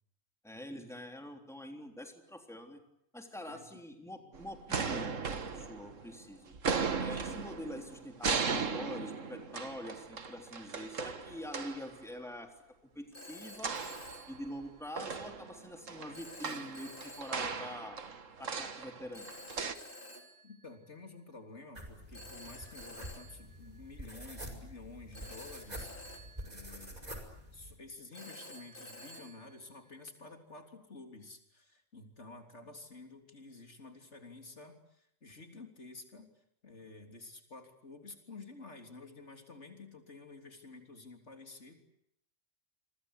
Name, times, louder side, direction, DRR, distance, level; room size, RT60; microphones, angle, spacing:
voice 1, 0.4-2.8 3.1-5.2 5.5-6.5 7.0-12.5 12.8-13.8 14.3-18.0 18.4-19.3, left 1 dB, ahead, 3 dB, 3.6 m, -45 dB
sound 1, 4.3-6.2 6.5-11.9 13.6-14.6 15.0-19.7, right 5 dB, 85° right, 2.0 m, -37 dB
Telephone, 11.9-12.2 13.1-15.1 16.1-17.9 19.1-21.3 22.1-24.5 25.1-27.4 28.1-30.3, left 1 dB, 45° left, 3.8 m, -52 dB
voice 2, 20.4-27.2 27.5-41.8, left 3 dB, 65° left, 4 dB, 3.8 m, -51 dB
sound 2, 21.8-27.8, equal, 30° right, 5.5 m, -47 dB
28.5 x 24.0 x 8.3 m, 0.76 s
omnidirectional pair, 1.3 m